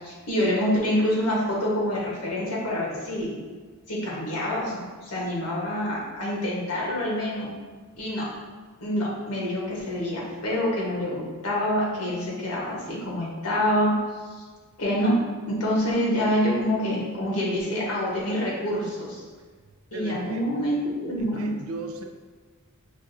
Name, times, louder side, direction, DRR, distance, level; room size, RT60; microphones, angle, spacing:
voice 1, 0.0-3.3 3.9-7.5 8.0-8.3 8.8-13.9 14.8-19.2 19.9-21.5, equal, 85° left, -4 dB, 1.2 m, -26 dB
voice 2, 19.9-20.4 21.2-22.0, right 3 dB, 70° right, 4 dB, 0.4 m, -36 dB
5.7 x 2.5 x 2.7 m, 1.5 s
head